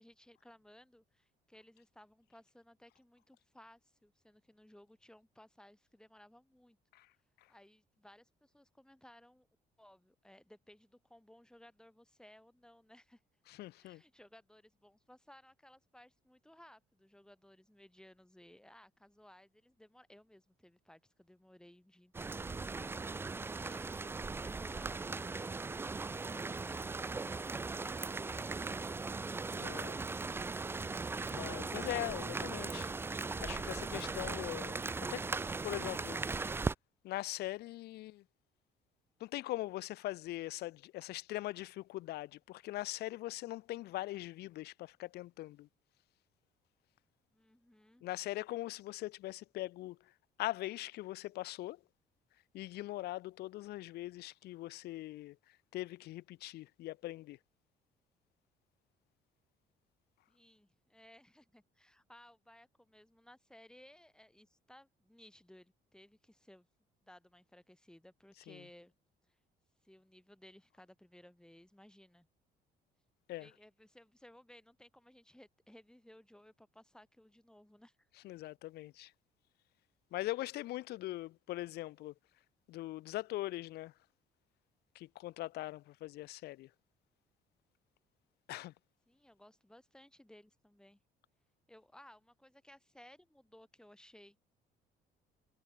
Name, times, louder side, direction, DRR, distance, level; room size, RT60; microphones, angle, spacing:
voice 1, 0.0-6.8 7.5-9.5 9.8-13.2 13.8-23.2 23.4-29.0 47.3-48.0 60.3-66.7 67.0-68.9 69.3-69.4 69.8-72.3 73.4-78.1 89.1-91.0 91.7-94.4, left 1 dB, 5° left, 4.1 m, -60 dB
voice 2, 13.5-14.0 29.5-30.0 31.3-32.9 33.4-34.8 35.1-35.3 35.6-36.2 37.0-38.2 39.2-45.7 48.0-50.1 50.4-51.8 52.5-57.4 68.5-68.6 73.3-73.5 78.2-79.1 80.1-82.1 82.7-83.9 84.9-86.7 88.5-88.7, left 17 dB, 75° left, 0.8 m, -41 dB
sound 1, 22.1-36.7, right 3 dB, 15° right, 0.4 m, -39 dB
cardioid pair, 110°, 17 cm